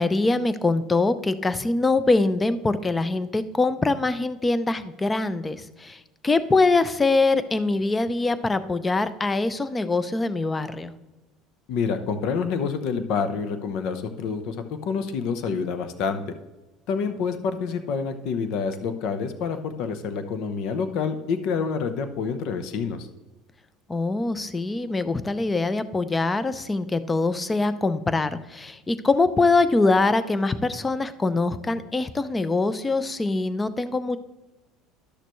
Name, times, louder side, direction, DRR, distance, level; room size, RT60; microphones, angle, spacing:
voice 1, 0.0-10.9 23.9-34.2, left 3 dB, 15° left, 14 dB, 0.5 m, -23 dB
voice 2, 11.7-14.6 14.8-16.2 16.9-23.1, left 5 dB, 65° left, 9 dB, 0.8 m, -27 dB
11.5 x 6.6 x 3.1 m, 1.1 s
supercardioid pair, 120°, 0 cm